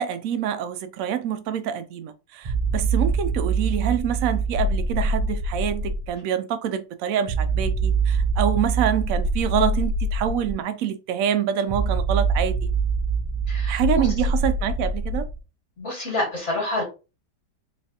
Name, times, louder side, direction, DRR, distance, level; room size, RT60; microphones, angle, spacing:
voice 1, 0.0-12.7 13.7-15.3, right 9 dB, 70° right, 0.9 m, -26 dB
sound 1, 2.4-6.1 7.3-10.5 11.7-15.4, right 3 dB, 40° right, 0.5 m, -24 dB
voice 2, 13.5-14.1 15.8-16.8, left 2 dB, 45° left, 2.4 m, -28 dB
4.0 x 3.2 x 2.7 m
omnidirectional pair, 1.7 m